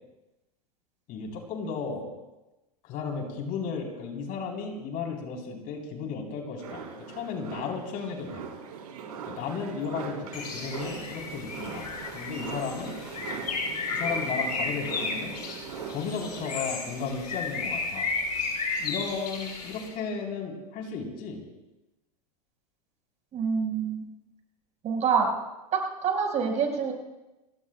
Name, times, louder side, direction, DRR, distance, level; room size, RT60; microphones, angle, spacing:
voice 1, 1.1-2.1 2.8-8.4 9.3-11.9 12.1-13.0 13.9-15.3 15.9-18.1 18.8-21.4, left 5 dB, 45° left, 2 dB, 3.5 m, -34 dB
sound 1, 6.6-16.6, right 6 dB, 70° right, 3.6 m, -40 dB
Bird, 10.3-19.9, left 3 dB, 85° left, 5.4 m, -33 dB
voice 2, 23.3-24.0 24.8-25.3 25.7-26.9, right 6 dB, 35° right, 1 dB, 4.7 m, -26 dB
29.5 x 17.0 x 2.2 m, 1.0 s
hypercardioid pair, 95°, 20 cm